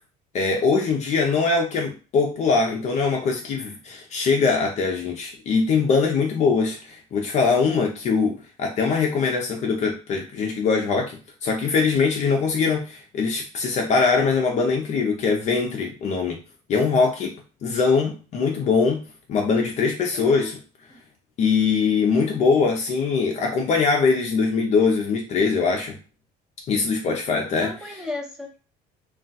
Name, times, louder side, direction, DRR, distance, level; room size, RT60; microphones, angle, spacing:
voice 1, 0.3-16.4 16.7-17.3 17.6-20.6 21.4-26.0 26.7-27.7, left 5 dB, 40° left, 1 dB, 0.5 m, -22 dB
voice 2, 20.1-20.5 27.6-28.6, left 3 dB, 5° right, 0 dB, 0.8 m, -34 dB
2.3 x 2.2 x 3.9 m, 0.34 s
cardioid pair, 135°, 17 cm